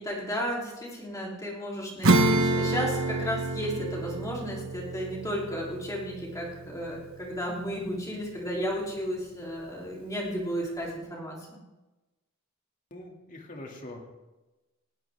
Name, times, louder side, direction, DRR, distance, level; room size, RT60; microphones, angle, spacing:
voice 1, 0.0-11.6, equal, 15° left, -3 dB, 3.4 m, -33 dB
Acoustic guitar / Strum, 2.0-8.0, right 2 dB, 70° right, 1.1 m, -28 dB
voice 2, 12.9-14.0, left 1 dB, 35° left, 1 dB, 2.4 m, -43 dB
20.0 x 16.5 x 3.6 m, 1.1 s
head